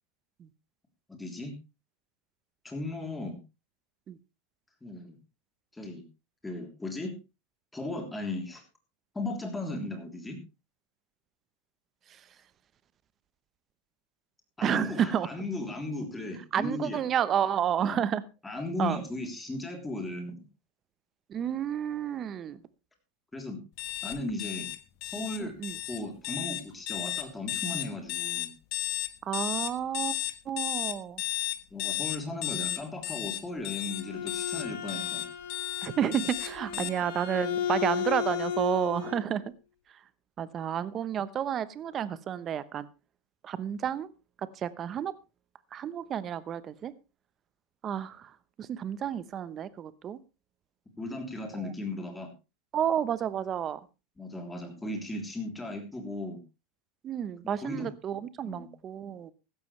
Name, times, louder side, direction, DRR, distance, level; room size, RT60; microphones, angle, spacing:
voice 1, 1.1-1.5 2.6-3.4 4.8-5.2 5.7-6.0 6.4-7.2 7.7-8.6 9.1-10.4 14.6-17.0 17.8-18.0 18.4-20.4 23.3-23.6 24.0-24.7 25.0-25.5 25.8-28.5 31.7-35.3 36.7-36.9 51.0-52.3 54.2-56.4 57.6-57.9 58.4-58.7, left 2 dB, 10° left, 3 dB, 3.2 m, -36 dB
voice 2, 14.6-15.3 16.5-18.2 18.8-19.0 21.3-22.6 25.4-25.8 29.2-30.1 30.4-31.2 35.8-39.4 39.9-40.0 40.4-42.9 43.4-44.1 44.4-45.1 45.7-46.9 47.8-50.2 51.6-51.7 52.7-53.8 57.0-59.3, right 9 dB, 25° right, 16 dB, 0.9 m, -31 dB
sound 1, 23.8-36.9, left 16 dB, 50° left, 1.5 m, -34 dB
Bowed string instrument, 33.7-39.2, left 9 dB, 80° left, 4.5 m, -34 dB
15.5 x 13.0 x 3.2 m, 0.28 s
supercardioid pair, 150°, 0 cm